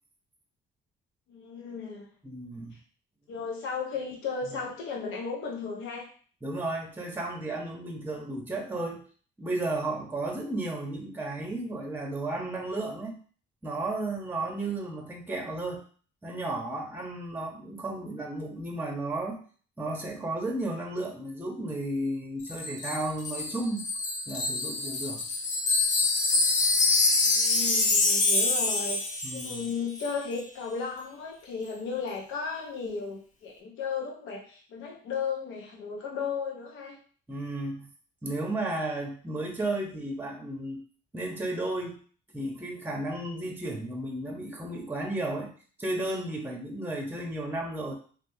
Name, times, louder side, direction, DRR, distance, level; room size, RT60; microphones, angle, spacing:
voice 1, 1.3-2.1 3.3-6.1 27.2-29.0 29.3-37.0, left 5 dB, 90° left, -1 dB, 0.7 m, -35 dB
voice 2, 2.2-2.8 4.5-4.7 6.4-9.0 9.4-13.2 13.6-15.8 16.2-19.4 19.8-23.9 24.3-25.2 29.2-29.7 37.3-37.9 38.2-40.8 41.1-42.0 42.3-45.5 45.8-47.9, right 2 dB, 10° right, 2 dB, 0.7 m, -33 dB
Wind chime, 22.5-29.7 30.0-30.2, left 3 dB, 35° left, 0.6 m, -26 dB
3.3 x 2.5 x 2.6 m, 0.43 s
cardioid pair, 90°, 20 cm